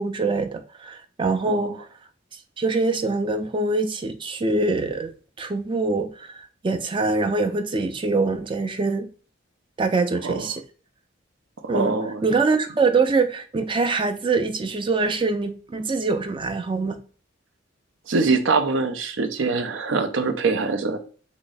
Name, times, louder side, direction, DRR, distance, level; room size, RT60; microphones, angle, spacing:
voice 1, 0.0-1.9 2.6-5.1 5.4-9.1 9.8-10.6 11.7-11.9 12.2-17.0, right 3 dB, 25° right, 0.4 m, -24 dB
voice 2, 1.4-1.8 10.2-10.5 11.6-12.2 18.1-21.0, right 4 dB, 80° right, 0.5 m, -23 dB
3.6 x 2.0 x 3.9 m
head